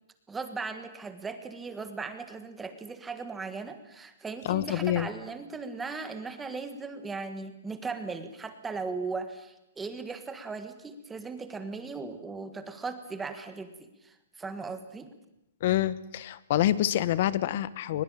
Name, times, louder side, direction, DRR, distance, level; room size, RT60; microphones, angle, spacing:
voice 1, 0.3-15.1, right 4 dB, 5° right, 9 dB, 1.5 m, -38 dB
voice 2, 4.4-5.1 15.6-18.0, left 13 dB, 45° left, 17 dB, 1.1 m, -27 dB
21.5 x 21.0 x 8.8 m, 0.88 s
hypercardioid pair, 170°, 0 cm